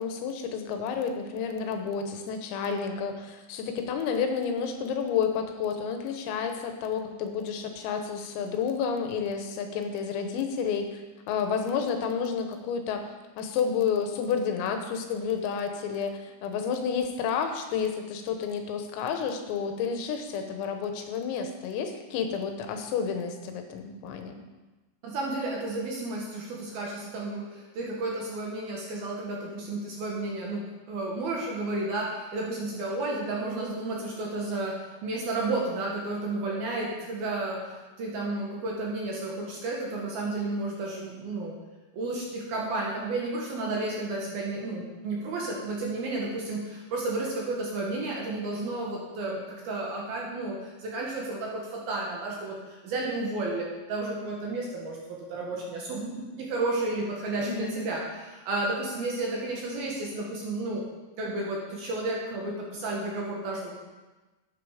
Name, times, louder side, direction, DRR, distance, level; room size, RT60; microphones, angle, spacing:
voice 1, 0.0-13.1 13.4-24.3 57.4-57.9, left 6 dB, 85° left, 5 dB, 3.8 m, -30 dB
voice 2, 25.0-37.6 38.0-41.6 41.9-60.8 61.2-63.7, right 2 dB, 60° right, -3 dB, 2.8 m, -32 dB
12.5 x 8.9 x 5.0 m, 1.2 s
omnidirectional pair, 5.9 m